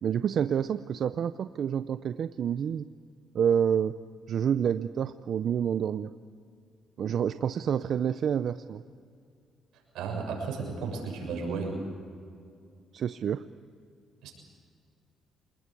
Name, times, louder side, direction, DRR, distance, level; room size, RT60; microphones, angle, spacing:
voice 1, 0.0-2.9 3.3-4.0 4.3-6.1 7.0-8.8 12.9-13.4, right 8 dB, 60° right, 12 dB, 0.6 m, -28 dB
voice 2, 9.9-11.8 14.2-14.3, right 4 dB, 85° right, 1 dB, 7.1 m, -33 dB
27.5 x 20.0 x 8.5 m, 2.3 s
cardioid pair, 90°, 0 cm